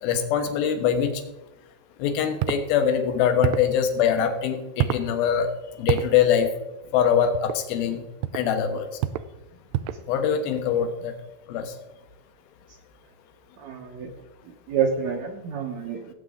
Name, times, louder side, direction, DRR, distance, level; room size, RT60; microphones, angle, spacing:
voice 1, 0.0-1.2 2.0-5.5 5.8-6.5 6.9-8.0 8.3-8.9 10.1-11.1 11.5-11.7, left 8 dB, 75° left, 7 dB, 3.0 m, -23 dB
sound 1, 2.4-2.6 3.4-3.7 4.8-5.1 5.9-6.1 7.3-7.6 8.2-8.5 9.0-9.3 9.7-10.1, right 12 dB, 80° right, 2.1 m, -26 dB
voice 2, 13.6-14.1 14.7-16.1, right 7 dB, 65° right, 1 dB, 1.9 m, -28 dB
18.0 x 8.2 x 3.8 m, 1.0 s
omnidirectional pair, 4.5 m